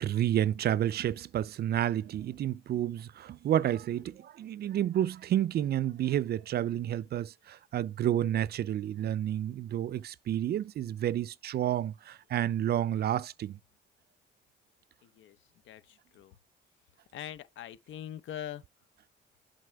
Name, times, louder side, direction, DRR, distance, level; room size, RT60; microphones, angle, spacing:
voice 1, 0.0-13.6, right 11 dB, 55° right, 0.4 m, -30 dB
voice 2, 15.7-16.3 17.1-18.6, left 11 dB, 75° left, 0.7 m, -42 dB
7.6 x 5.3 x 3.4 m
cardioid pair, 90°, 20 cm